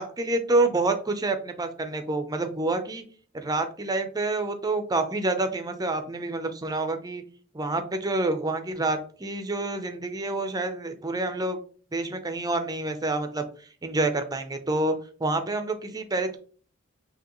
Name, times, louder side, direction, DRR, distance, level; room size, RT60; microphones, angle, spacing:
voice 1, 0.0-3.0 3.3-7.2 7.5-11.6 11.9-13.5 13.8-14.9 15.2-16.4, right 2 dB, 20° right, 7 dB, 0.6 m, -27 dB
6.1 x 2.8 x 3.0 m, 0.43 s
head